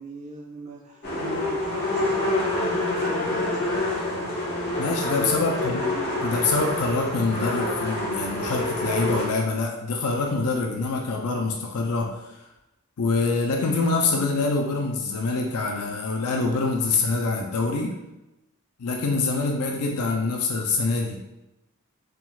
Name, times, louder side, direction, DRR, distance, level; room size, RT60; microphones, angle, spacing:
voice 1, 0.0-3.7 5.4-5.8, right 1 dB, 30° right, -3 dB, 0.9 m, -39 dB
sound 1, 1.0-9.2, left 1 dB, 45° left, 1.3 m, -27 dB
voice 2, 4.8-5.8 6.2-12.5 13.0-18.0 18.8-21.2, left 3 dB, 90° left, 1 dB, 0.5 m, -25 dB
4.6 x 3.7 x 2.4 m, 0.95 s
head